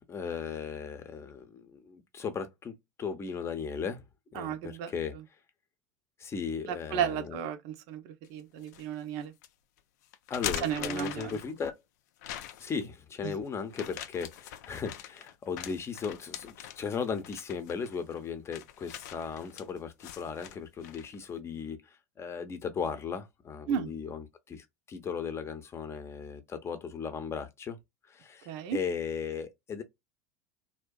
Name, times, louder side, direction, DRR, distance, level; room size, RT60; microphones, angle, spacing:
voice 1, 0.0-4.0 4.3-5.2 6.2-7.4 10.3-11.7 12.6-27.8 28.1-29.8, left 6 dB, 30° left, 0.7 m, -37 dB
voice 2, 4.4-4.9 6.7-9.3 10.6-11.4 13.2-13.4 23.7-23.9 28.5-28.8, right 8 dB, 60° right, 0.6 m, -33 dB
sound 1, 8.2-8.9 9.4-9.5 10.1-11.7 12.2-12.8 13.7-21.2, left 11 dB, 70° left, 0.4 m, -42 dB
2.6 x 2.2 x 2.2 m
hypercardioid pair, 90°, 9 cm